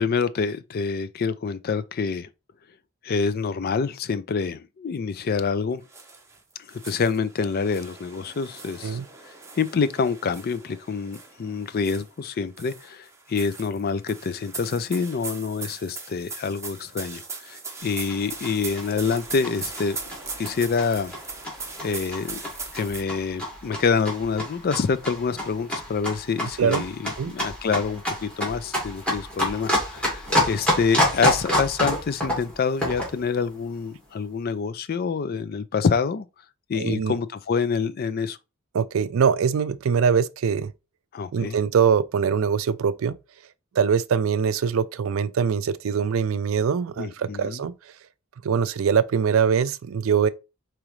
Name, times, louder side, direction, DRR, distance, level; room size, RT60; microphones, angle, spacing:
voice 1, 0.0-2.3 3.0-5.8 6.8-9.0 9.6-20.0 20.4-21.1 21.8-22.4 22.7-36.3 36.7-38.4 41.1-41.6 47.0-47.6, left 5 dB, 50° left, 0.4 m, -26 dB
sound 1, 5.9-6.4 6.7-12.2 12.6-23.0, right 4 dB, 15° right, 0.8 m, -39 dB
sound 2, 17.8-33.2, equal, 5° left, 2.0 m, -28 dB
voice 2, 36.7-37.1 38.7-40.7 41.3-43.1 43.8-47.7 48.4-50.3, right 6 dB, 80° right, 0.4 m, -23 dB
4.9 x 3.1 x 3.1 m
head